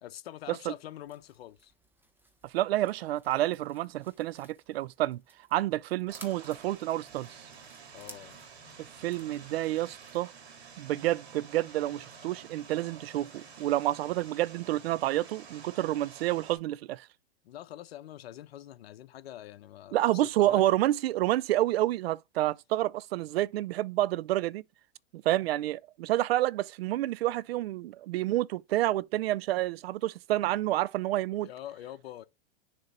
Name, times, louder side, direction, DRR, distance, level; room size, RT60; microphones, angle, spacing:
voice 1, 0.0-1.7 7.9-8.4 17.4-20.6 31.4-32.3, left 12 dB, 70° left, 0.9 m, -45 dB
sound 1, 1.0-10.2, right 1 dB, 5° right, 1.2 m, -57 dB
voice 2, 2.4-5.2 5.5-7.3 8.8-10.3 10.8-17.1 19.9-24.6 25.1-31.5, right 15 dB, 70° right, 0.5 m, -29 dB
Vehicle, 6.1-16.6, right 5 dB, 85° right, 2.1 m, -50 dB
6.7 x 3.1 x 5.6 m
hypercardioid pair, 120°, 31 cm